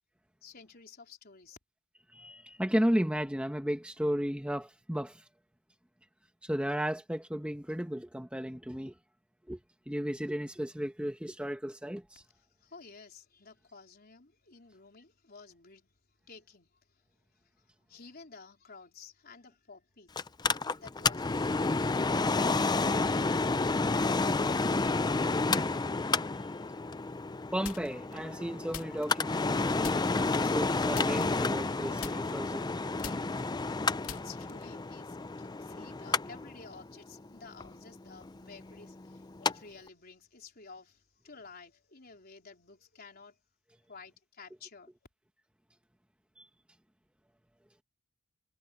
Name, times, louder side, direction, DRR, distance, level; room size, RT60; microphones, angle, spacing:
voice 1, 0.4-1.6 12.6-15.8 16.3-16.7 17.9-20.1 20.7-21.7 34.1-43.3 43.9-44.9, left 4 dB, 45° left, 4.0 m, -52 dB
voice 2, 2.1-5.2 6.4-8.9 9.5-9.6 9.9-12.2 25.9-26.1 26.4-26.5 27.5-33.3 46.4-46.5, equal, 5° right, 1.3 m, -34 dB
Mechanical fan, 20.2-39.5 39.9-40.0, left 3 dB, 20° left, 0.5 m, -30 dB
sound 1, 27.6-28.1 28.7-29.5 29.8-30.3 30.9-31.7 32.0-34.8, left 7 dB, 90° left, 2.6 m, -44 dB
head